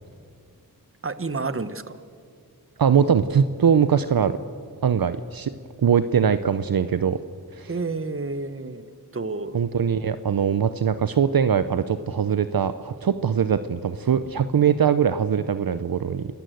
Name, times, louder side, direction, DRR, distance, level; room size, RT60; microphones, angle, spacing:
voice 1, 1.0-2.0 7.7-8.9 9.1-9.6, right 3 dB, 35° right, 13 dB, 1.1 m, -30 dB
voice 2, 2.8-4.3 4.8-5.5 5.8-7.2 7.5-7.7 9.5-16.3, right 7 dB, 65° right, 12 dB, 0.7 m, -21 dB
30.0 x 13.5 x 7.8 m, 2.3 s
wide cardioid pair, 60°, 38 cm